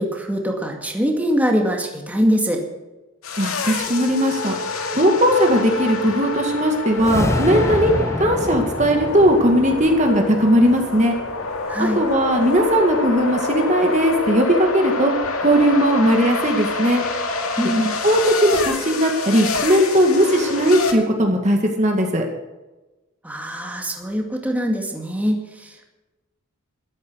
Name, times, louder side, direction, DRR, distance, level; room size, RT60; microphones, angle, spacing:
voice 1, 0.0-2.6 11.7-12.0 17.6-17.9 23.2-25.9, equal, 5° right, 1 dB, 2.2 m, -23 dB
sound 1, 3.2-20.9, left 3 dB, 80° left, 2.4 m, -27 dB
voice 2, 3.4-4.6 4.9-7.9 8.2-11.2 11.8-15.1 15.4-17.0 17.8-22.2, equal, 35° right, 2 dB, 2.0 m, -18 dB
sound 2, 6.9-11.3, left 1 dB, 15° left, 0.8 m, -27 dB
13.5 x 13.0 x 6.3 m, 1.1 s
head